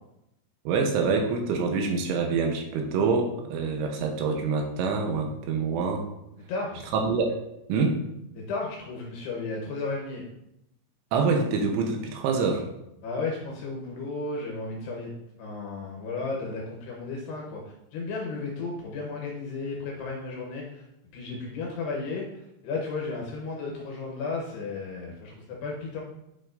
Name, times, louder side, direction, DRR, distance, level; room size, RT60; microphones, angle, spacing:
voice 1, 0.7-6.1 6.9-7.4 7.7-8.0 11.1-12.7, right 4 dB, 80° right, 3 dB, 3.1 m, -26 dB
voice 2, 6.5-6.8 8.4-10.2 13.0-15.1 15.4-20.9 21.1-26.0, left 3 dB, 75° left, -1 dB, 2.5 m, -34 dB
10.0 x 5.6 x 2.6 m, 0.83 s
omnidirectional pair, 5.8 m